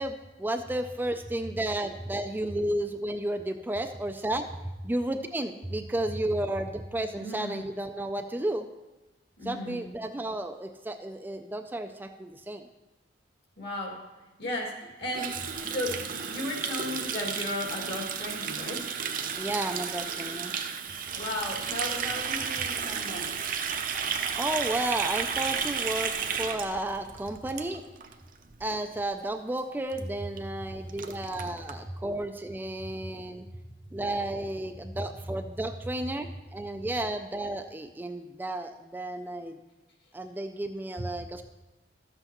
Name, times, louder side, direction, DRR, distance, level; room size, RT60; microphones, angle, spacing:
voice 1, 0.0-4.5 4.8-8.7 9.4-12.6 19.4-20.5 24.4-26.1 26.4-27.8 28.6-33.5 33.9-39.6 40.1-41.4, right 1 dB, 10° right, 6 dB, 0.3 m, -32 dB
voice 2, 7.1-7.6 9.4-9.9 13.6-14.0 14.4-18.9 21.1-23.4 31.8-31.9 33.0-33.1, left 1 dB, 65° left, -1 dB, 2.2 m, -35 dB
Water tap faucet, 15.1-28.1 28.4-28.7 29.0-29.3 29.6-29.7 29.9-30.0 30.4-30.5 30.7-31.7, right 6 dB, 50° right, 0.6 m, -33 dB
sound 1, 21.1-27.5, left 1 dB, 85° left, 0.9 m, -53 dB
12.5 x 7.8 x 3.0 m, 1.1 s
head